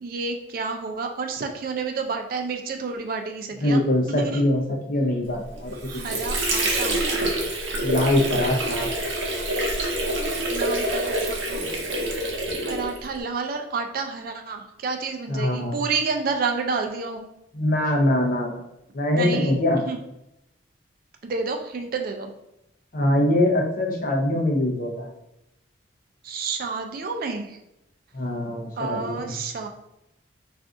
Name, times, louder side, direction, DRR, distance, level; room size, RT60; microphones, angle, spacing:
voice 1, 0.0-3.8 4.1-4.4 5.9-7.0 10.5-11.6 12.7-17.2 19.2-19.6 19.8-20.0 21.2-22.3 26.2-27.5 28.8-29.7, right 4 dB, 50° right, 4 dB, 0.3 m, -30 dB
voice 2, 3.6-6.2 7.8-8.9 15.3-15.8 17.5-18.6 18.9-19.8 22.9-25.1 28.1-29.4, left 1 dB, 45° left, 1 dB, 0.6 m, -23 dB
Water / Sink (filling or washing), 5.5-13.2, right 1 dB, 80° right, 0.7 m, -26 dB
2.5 x 2.3 x 3.6 m, 0.85 s
head